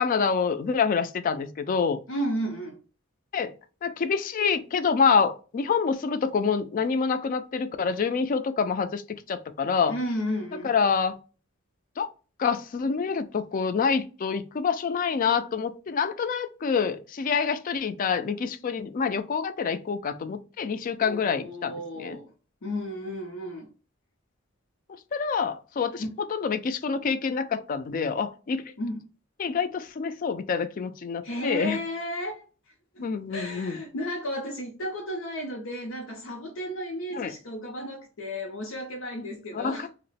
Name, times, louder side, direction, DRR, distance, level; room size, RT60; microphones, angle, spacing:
voice 1, 0.0-2.0 3.3-3.5 3.8-10.0 10.6-11.2 12.0-12.1 12.4-22.2 25.1-26.0 26.3-28.6 29.4-31.8 33.0-33.8 37.1-37.3 39.5-39.9, left 5 dB, 40° left, 0.3 m, -27 dB
voice 2, 2.1-2.8 9.9-10.7 21.0-22.3 22.6-23.7 26.0-26.1 28.8-29.0 31.2-32.4 32.9-39.9, equal, 85° left, 0.6 m, -33 dB
2.9 x 2.0 x 4.0 m
head